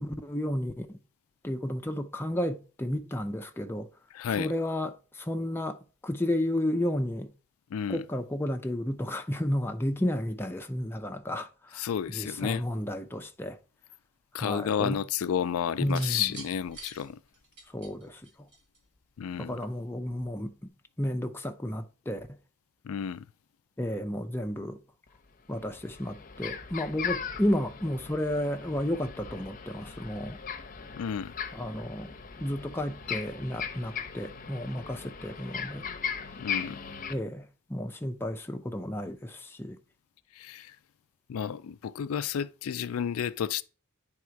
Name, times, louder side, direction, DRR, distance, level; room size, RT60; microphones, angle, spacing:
voice 1, 0.0-1.0 1.4-3.9 4.4-5.8 6.0-7.3 7.9-13.6 14.4-15.0 15.8-16.3 17.7-18.5 19.4-20.6 21.0-22.3 23.8-24.8 25.5-30.4 31.5-32.1 32.4-35.9 37.1-39.8, left 1 dB, 10° left, 0.5 m, -32 dB
voice 2, 4.1-4.5 7.7-8.0 11.7-12.6 14.3-17.2 19.2-19.5 22.8-23.3 30.9-31.3 36.4-36.8 40.3-40.8 41.3-43.6, left 8 dB, 75° left, 0.4 m, -31 dB
sound 1, 15.8-19.0 20.1-20.4, right 2 dB, 55° right, 4.1 m, -46 dB
sound 2, 25.1-25.2 25.5-37.1, left 6 dB, 40° left, 0.7 m, -38 dB
9.3 x 3.6 x 4.6 m
head